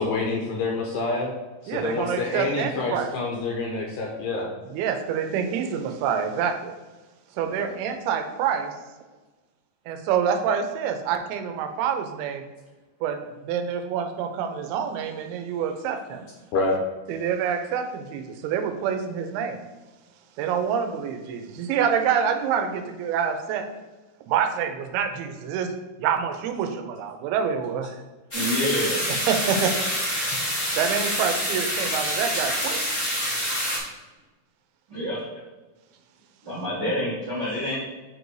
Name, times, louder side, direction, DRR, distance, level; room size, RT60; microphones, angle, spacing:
voice 1, 0.0-1.3 1.6-4.5 7.5-7.7 16.5-16.8, left 3 dB, 75° left, -1 dB, 2.0 m, -27 dB
voice 2, 1.7-3.1 4.7-6.7 7.4-8.7 9.9-12.4 13.0-16.3 17.1-19.6 20.4-23.7 24.3-25.7 26.0-28.0 29.3-29.7 30.7-32.8, right 7 dB, 90° right, 6 dB, 2.6 m, -27 dB
sound 1, 28.3-33.8, equal, 55° left, 0.6 m, -27 dB
voice 3, 28.3-29.0 34.9-35.2 36.4-37.7, left 1 dB, 65° right, -9 dB, 1.0 m, -27 dB
7.8 x 2.6 x 4.6 m, 1.2 s
omnidirectional pair, 4.4 m